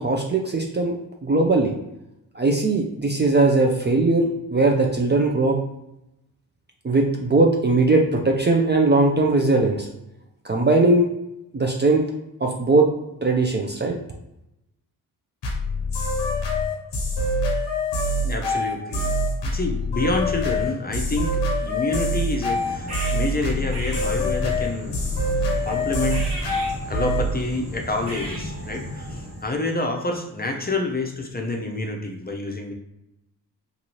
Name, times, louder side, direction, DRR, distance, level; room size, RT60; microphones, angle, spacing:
voice 1, 0.0-1.7 2.3-5.6 6.8-9.9 10.4-11.1 11.5-12.1 12.4-12.9 13.2-14.0, right 2 dB, 25° right, 1 dB, 0.5 m, -19 dB
sound 1, 15.4-27.3, left 1 dB, 85° left, 0.7 m, -25 dB
voice 2, 18.2-19.1 19.4-25.1 25.6-26.4 26.9-32.7, left 2 dB, 20° left, 2 dB, 0.6 m, -28 dB
sound 2, 22.3-29.5, equal, 70° right, 1.3 m, -34 dB
2.6 x 2.6 x 2.9 m, 0.86 s
supercardioid pair, 40°, 42 cm